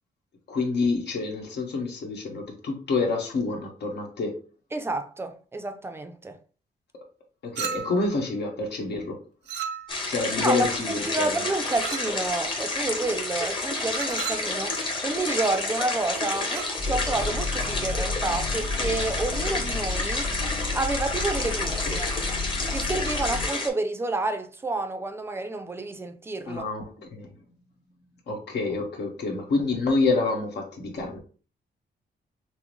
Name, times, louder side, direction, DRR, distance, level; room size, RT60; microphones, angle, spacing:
voice 1, 0.5-4.4 7.4-9.2 10.1-11.3 21.9-22.0 26.5-27.3 28.3-31.2, left 3 dB, 75° left, 1.4 m, -27 dB
voice 2, 4.7-6.4 10.4-20.3 20.7-22.1 22.7-26.7, right 2 dB, 15° right, 0.4 m, -29 dB
Chink clink, 7.6-8.1 9.5-10.1 11.8-12.2 13.9-14.5 16.4-16.8, right 8 dB, 85° right, 0.6 m, -34 dB
sound 1, 9.9-23.7, left 2 dB, 30° left, 1.0 m, -30 dB
sound 2, 16.8-23.5, left 3 dB, 45° left, 1.5 m, -32 dB
6.1 x 2.1 x 3.1 m
wide cardioid pair, 165°, 17 cm